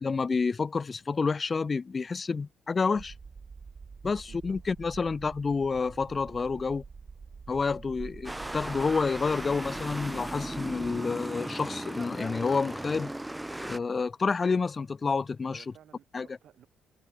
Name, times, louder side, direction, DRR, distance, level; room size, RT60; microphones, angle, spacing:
voice 1, 0.0-3.1 4.0-6.8 7.5-13.1 13.6-15.6 16.1-16.3, left 4 dB, 35° left, 0.3 m, -29 dB
sound 1, 2.9-11.0, right 5 dB, 35° right, 2.6 m, -47 dB
voice 2, 4.1-4.6 8.0-8.1 15.5-16.7, right 10 dB, 70° right, 4.4 m, -56 dB
sound 2, 8.2-13.8, right 1 dB, 10° right, 0.9 m, -37 dB
cardioid pair, 90°, 0 cm